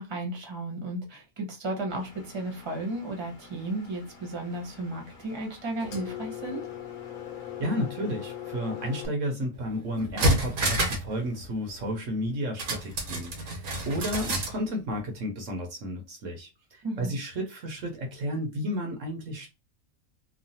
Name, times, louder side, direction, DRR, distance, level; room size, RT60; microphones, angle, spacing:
voice 1, 0.0-6.6 16.8-17.2, right 2 dB, 20° right, 0.9 m, -34 dB
Engine, 1.9-9.1, left 10 dB, 80° left, 1.2 m, -42 dB
voice 2, 7.6-19.5, equal, 65° right, 1.1 m, -32 dB
sound 1, 9.6-9.7 10.0-11.1 11.4-11.5 12.6-14.6 14.9-15.0, right 1 dB, 90° right, 1.4 m, -27 dB
3.1 x 2.2 x 2.7 m
omnidirectional pair, 1.5 m